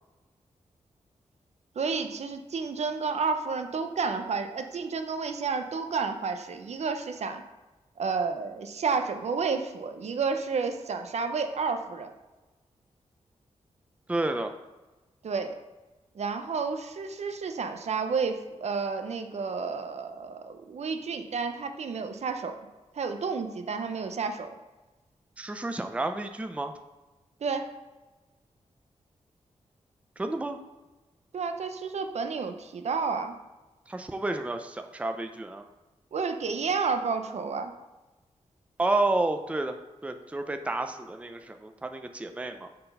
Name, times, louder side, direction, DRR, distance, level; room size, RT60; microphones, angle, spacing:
voice 1, 1.8-7.4 8.0-12.1 15.2-15.6 16.1-22.5 22.9-24.5 27.4-27.7 31.3-33.3 36.1-37.7, right 5 dB, 65° right, 7 dB, 0.7 m, -31 dB
voice 2, 14.1-14.5 25.4-26.7 30.2-30.6 33.9-35.7 38.8-39.8 40.0-42.7, right 2 dB, 10° right, 6 dB, 0.5 m, -30 dB
6.5 x 4.0 x 5.4 m, 1.1 s
wide cardioid pair, 100°, 12 cm